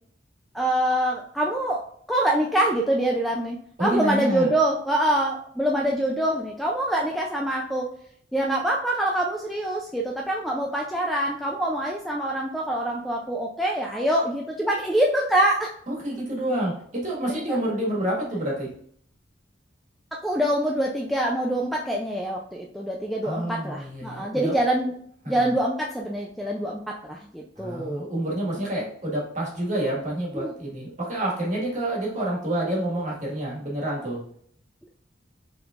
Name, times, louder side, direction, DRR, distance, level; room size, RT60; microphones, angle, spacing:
voice 1, 0.5-1.8 2.1-7.9 8.3-15.7 17.3-17.6 20.2-24.9 25.3-28.1 28.7-28.8 30.3-30.5, right 1 dB, ahead, -2 dB, 0.3 m, -25 dB
voice 2, 3.8-4.5 15.9-18.7 23.2-24.6 25.2-25.5 27.6-34.2, right 1 dB, 40° right, -4 dB, 1.7 m, -28 dB
5.9 x 3.6 x 2.4 m, 0.64 s
head